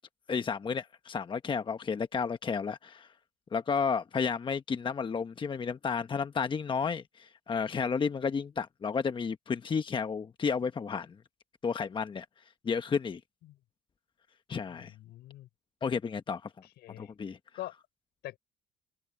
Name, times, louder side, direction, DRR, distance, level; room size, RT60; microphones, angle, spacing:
voice 1, 0.3-3.1 3.5-11.2 11.6-12.2 12.6-13.2 14.5-14.9 15.8-16.5 17.0-17.4, left 5 dB, 30° left, 1.0 m, -32 dB
voice 2, 14.7-15.5 16.8-17.1 17.5-17.7 18.2-18.4, left 15 dB, 80° left, 4.8 m, -43 dB
cardioid pair, 110°, 17 cm